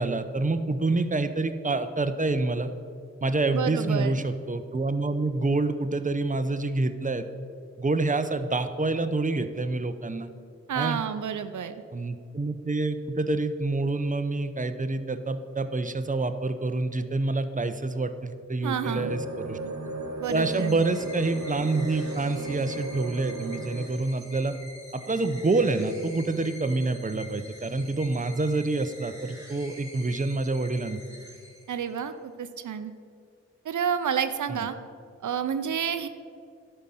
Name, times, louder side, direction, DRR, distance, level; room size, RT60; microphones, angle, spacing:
voice 1, 0.0-2.7 3.2-7.3 7.8-10.3 10.7-11.0 11.9-19.6 20.3-24.5 24.9-31.0 34.5-34.6, right 3 dB, 25° right, 10 dB, 0.8 m, -27 dB
voice 2, 3.5-4.2 10.7-11.8 18.6-19.1 20.2-20.8 31.7-32.9 33.6-34.8 35.2-36.1, right 8 dB, 90° right, 10 dB, 0.5 m, -29 dB
sound 1, 18.8-23.9, right 2 dB, 65° right, 1.1 m, -35 dB
sound 2, 20.2-32.1, left 1 dB, 10° right, 3.2 m, -47 dB
11.5 x 5.6 x 7.6 m, 2.2 s
cardioid pair, 40°, 29 cm